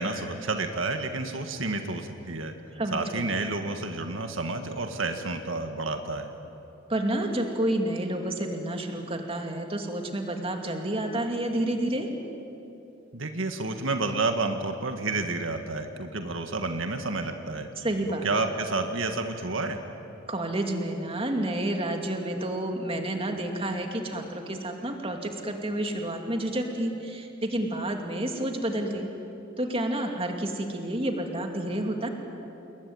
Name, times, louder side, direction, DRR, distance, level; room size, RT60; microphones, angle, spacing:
voice 1, 0.0-2.5 2.9-6.3 13.1-17.7 18.2-19.8, right 3 dB, 80° right, 6 dB, 1.8 m, -30 dB
voice 2, 2.7-3.3 6.9-12.1 17.8-18.3 20.3-29.1 29.6-32.1, right 1 dB, 30° right, 3 dB, 2.6 m, -30 dB
28.5 x 21.5 x 9.4 m, 2.8 s
head